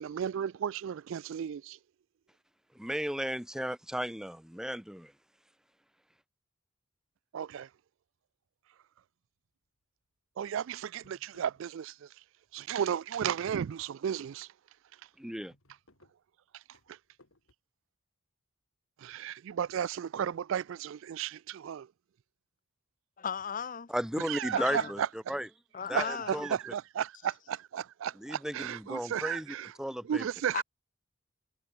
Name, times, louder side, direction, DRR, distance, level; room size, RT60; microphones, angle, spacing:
voice 1, 0.0-1.8 7.3-7.7 10.4-12.2 12.5-14.5 16.5-17.0 19.0-21.9 24.2-25.1 25.9-29.7 30.0-30.6, right 8 dB, 60° right, 0.3 m, -34 dB
voice 2, 2.7-5.1 15.2-15.5 23.9-25.0 25.3-25.5 25.9-26.6 28.2-30.2, equal, 5° right, 0.6 m, -35 dB
sound 1, 9.6-10.0 10.5-10.6 10.9-12.2 12.5-13.1 13.6-13.8 14.1-14.2 14.5-14.6 14.9-17.5, left 1 dB, 70° left, 3.7 m, -66 dB
voice 3, 23.2-23.9 24.5-24.9 25.7-26.5 30.5-30.6, left 7 dB, 35° left, 0.6 m, -36 dB
head